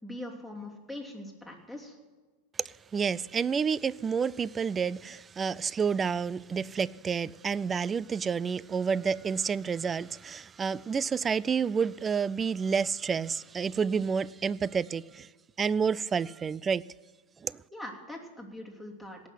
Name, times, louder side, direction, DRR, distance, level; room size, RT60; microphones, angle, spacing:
voice 1, 0.0-2.0 17.7-19.2, left 1 dB, ahead, 3.0 m, -42 dB
voice 2, 2.6-15.3 15.6-16.8 17.4-17.6, right 6 dB, 25° right, 0.3 m, -29 dB
18.0 x 6.3 x 9.2 m
hypercardioid pair, 100°, 0 cm